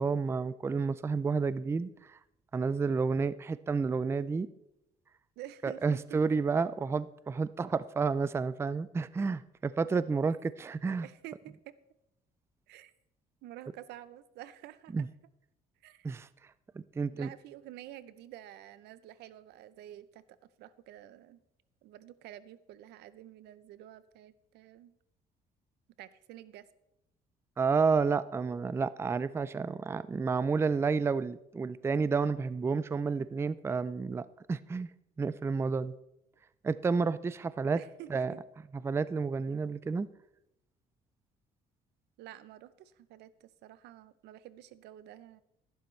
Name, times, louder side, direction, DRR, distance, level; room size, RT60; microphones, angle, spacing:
voice 1, 0.0-2.2 2.5-4.5 5.6-11.1 14.9-15.1 16.0-16.3 16.7-17.3 27.6-34.9 35.2-35.9 36.6-37.8 38.1-38.3 38.8-40.1, right 5 dB, 15° right, 16 dB, 0.4 m, -30 dB
voice 2, 5.4-6.5 11.0-11.6 12.7-12.9 13.4-15.1 15.8-16.1 17.1-20.2 20.6-21.4 21.8-24.9 26.0-26.7 37.8-38.4 42.2-45.4, right 13 dB, 80° right, 16 dB, 0.6 m, -49 dB
13.0 x 11.5 x 3.2 m, 0.85 s
cardioid pair, 110°, 17 cm